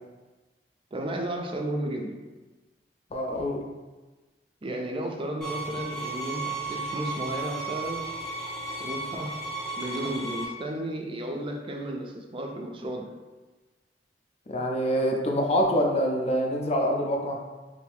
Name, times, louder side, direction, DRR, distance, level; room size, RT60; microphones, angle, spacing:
voice 1, 0.9-2.2 4.6-8.1 8.8-9.4 9.8-13.1, right 1 dB, 30° right, 2 dB, 0.4 m, -33 dB
voice 2, 3.1-3.7 14.5-17.4, equal, 35° left, 1 dB, 0.5 m, -25 dB
sound 1, 5.4-10.5, right 3 dB, 5° left, 0.7 m, -34 dB
3.2 x 2.5 x 3.4 m, 1.2 s
head